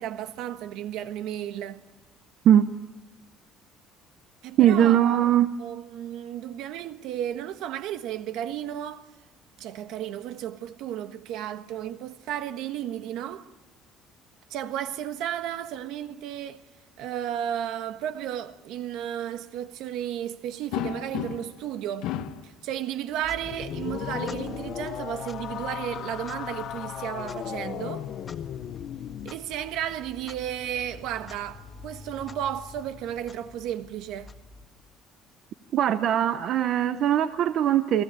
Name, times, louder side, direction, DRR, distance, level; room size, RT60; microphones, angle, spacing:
voice 1, 0.0-1.8 4.4-9.1 9.6-13.5 14.5-16.6 17.0-22.1 22.4-28.1 29.2-34.3, right 11 dB, 70° right, 1.4 m, -33 dB
voice 2, 4.6-5.5 35.7-38.0, right 11 dB, 45° right, 0.8 m, -20 dB
sound 1, 20.7-21.7 22.0-22.5 23.7-24.5 27.1-28.2 29.6-29.8 30.1-30.2 31.8-33.0, left 11 dB, 75° left, 1.7 m, -37 dB
Clock, 23.1-35.0, left 3 dB, 20° left, 1.6 m, -47 dB
sound 2, 23.4-29.4, left 10 dB, 45° left, 0.8 m, -36 dB
29.5 x 20.0 x 8.9 m
cardioid pair, 170°, 0 cm